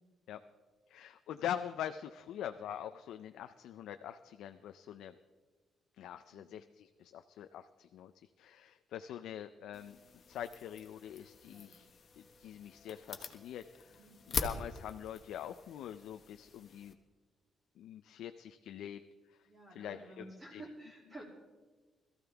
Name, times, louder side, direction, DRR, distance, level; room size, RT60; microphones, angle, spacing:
voice 1, 0.9-5.1 6.0-8.1 8.4-10.0 10.3-11.9 12.2-13.9 14.3-17.0 17.8-19.0 19.7-20.6, left 10 dB, 80° left, 8 dB, 0.5 m, -44 dB
sound 1, 9.7-16.9, left 5 dB, 35° left, 1.1 m, -44 dB
voice 2, 11.4-11.8 13.9-14.2 19.5-21.2, right 1 dB, 20° right, -4 dB, 2.9 m, -52 dB
21.5 x 14.0 x 3.5 m, 1.3 s
cardioid pair, 180°, 0 cm